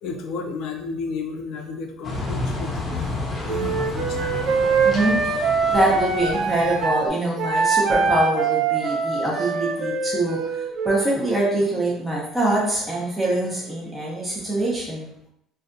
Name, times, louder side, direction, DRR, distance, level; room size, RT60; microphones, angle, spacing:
voice 1, 0.0-3.2 3.4-4.5 13.4-13.6, left 4 dB, 65° left, 3 dB, 0.4 m, -33 dB
sound 1, 2.0-7.0, left 2 dB, 30° left, 0.7 m, -30 dB
Wind instrument woodwind instrument, 3.5-7.0 7.4-11.1, right 5 dB, 55° right, 0.4 m, -23 dB
voice 2, 4.8-15.1, right 2 dB, 10° right, -5 dB, 0.7 m, -24 dB
2.5 x 2.2 x 2.5 m, 0.76 s
cardioid pair, 110°, 0 cm